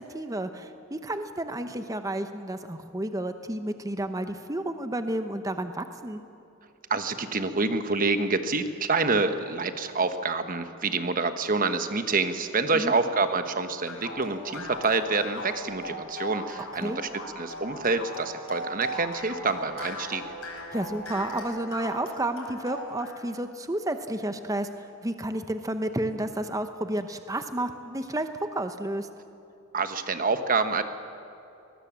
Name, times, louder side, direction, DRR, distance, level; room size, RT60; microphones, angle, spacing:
voice 1, 0.0-6.2 12.7-12.9 16.8-17.0 20.7-29.1, right 1 dB, 15° right, 8 dB, 0.8 m, -31 dB
voice 2, 6.9-17.1 17.3-20.2 29.7-30.8, right 3 dB, 40° right, 9 dB, 1.2 m, -27 dB
sound 1, 13.9-23.2, left 1 dB, 65° left, 5.6 m, -38 dB
22.0 x 20.0 x 7.4 m, 2.8 s
head